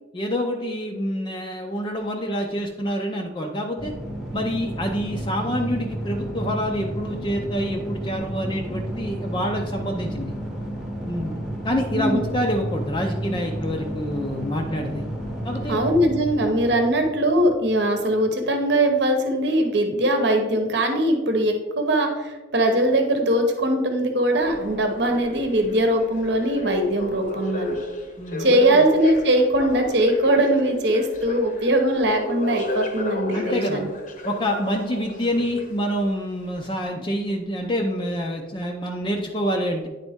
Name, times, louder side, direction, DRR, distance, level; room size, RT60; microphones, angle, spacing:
voice 1, 0.1-3.9 4.3-10.3 11.1-11.4 11.6-15.0 15.4-15.8 28.2-28.8 33.3-33.8 34.2-39.9, equal, 25° left, 1 dB, 0.5 m, -27 dB
sound 1, 3.8-18.2, right 1 dB, ahead, 0.8 m, -32 dB
voice 2, 15.7-27.8 28.4-33.9, right 1 dB, 55° right, 4 dB, 0.9 m, -21 dB
sound 2, 24.4-36.0 36.7-36.8, left 1 dB, 40° left, 0.8 m, -33 dB
10.0 x 4.0 x 3.5 m, 1.2 s
head